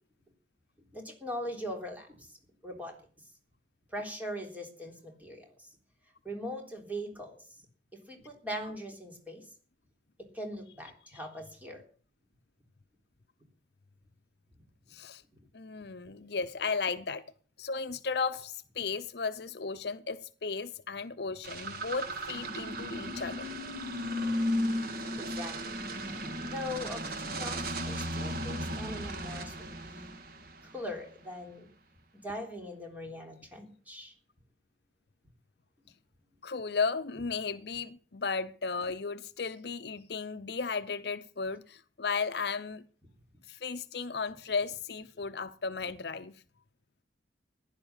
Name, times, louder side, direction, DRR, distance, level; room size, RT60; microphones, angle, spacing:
voice 1, 0.9-2.4 2.6-3.0 3.9-5.7 6.2-7.4 7.9-9.5 10.2-11.8 25.1-25.8 26.2-30.2 30.6-31.7 32.1-34.1, equal, 10° right, 3.6 m, -41 dB
voice 2, 14.9-15.2 15.5-17.2 17.6-23.5 36.4-42.8 43.5-46.3, left 5 dB, 60° left, 0.7 m, -35 dB
sound 1, 21.4-31.0, equal, 55° right, 1.7 m, -35 dB
16.0 x 10.5 x 7.3 m
head